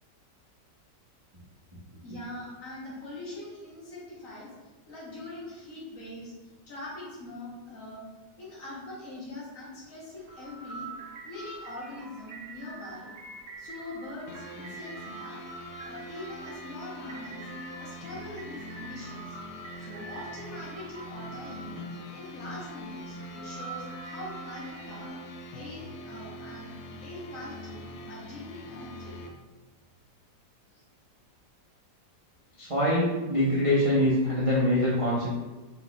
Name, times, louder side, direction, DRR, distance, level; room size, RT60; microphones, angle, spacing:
voice 1, 2.0-4.5 4.9-6.3 6.7-8.0 8.4-10.9 11.2-13.1 13.6-15.5 15.8-17.5 17.8-19.4 19.8-21.8 22.1-25.2 25.5-26.7 27.0-29.2, left 2 dB, 50° left, -5 dB, 1.4 m, -42 dB
sound 1, 10.1-25.1, right 3 dB, 80° right, 1.4 m, -45 dB
sound 2, 14.3-29.3, equal, 75° left, 1.1 m, -43 dB
voice 2, 32.6-35.3, left 1 dB, 35° right, -8 dB, 0.5 m, -24 dB
4.2 x 4.1 x 2.3 m, 1.3 s
omnidirectional pair, 1.9 m